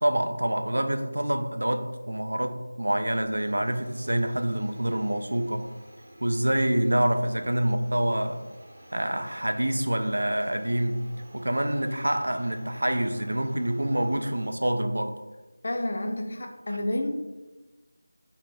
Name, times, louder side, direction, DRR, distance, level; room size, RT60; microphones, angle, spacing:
voice 1, 0.0-5.7 6.2-8.4 8.9-11.1 11.3-15.2, right 1 dB, 80° right, 6 dB, 0.3 m, -26 dB
sound 1, 3.3-14.5, right 1 dB, 35° right, 0.7 m, -51 dB
voice 2, 15.6-17.1, left 1 dB, 45° left, 3 dB, 0.4 m, -30 dB
2.5 x 2.1 x 3.2 m, 1.1 s
figure-of-eight pair, 170°, 0 cm